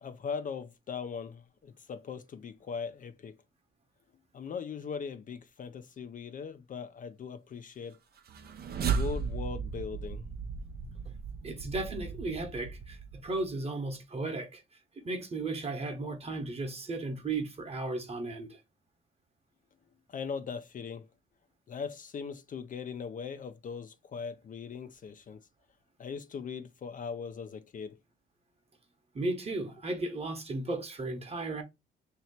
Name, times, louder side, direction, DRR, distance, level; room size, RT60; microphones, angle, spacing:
voice 1, 0.0-3.4 4.3-8.0 8.8-10.3 20.1-21.1 21.7-25.4 26.0-28.0, left 6 dB, 40° left, 0.4 m, -40 dB
sound 1, 8.2-13.5, right 6 dB, 50° right, 0.6 m, -36 dB
voice 2, 11.4-14.6 15.0-18.6 29.1-31.6, right 2 dB, 30° right, 1.1 m, -35 dB
3.0 x 2.9 x 4.2 m
cardioid pair, 90°, 20 cm